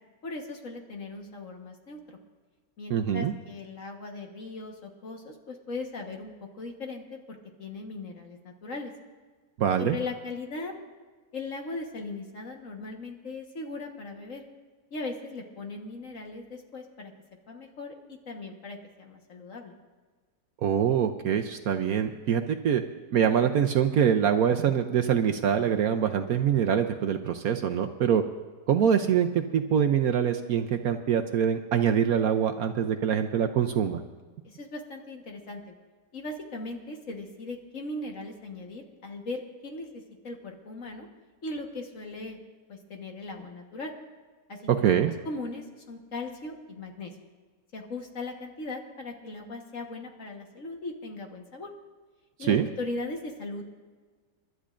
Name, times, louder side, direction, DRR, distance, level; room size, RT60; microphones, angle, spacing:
voice 1, 0.2-2.2 2.8-8.9 9.8-10.7 11.3-14.4 14.9-17.1 17.5-17.9 18.3-19.7 34.4-35.7 36.1-41.1 41.4-42.4 42.7-43.9 44.5-44.9 45.2-47.1 47.7-51.7 52.4-53.6, left 2 dB, 50° left, 3 dB, 1.6 m, -38 dB
voice 2, 2.9-3.3 9.6-10.0 20.6-22.8 23.1-28.2 28.7-34.0 44.7-45.1 52.5-52.7, right 8 dB, 65° right, 6 dB, 1.0 m, -24 dB
29.0 x 12.5 x 2.5 m, 1.4 s
omnidirectional pair, 1.9 m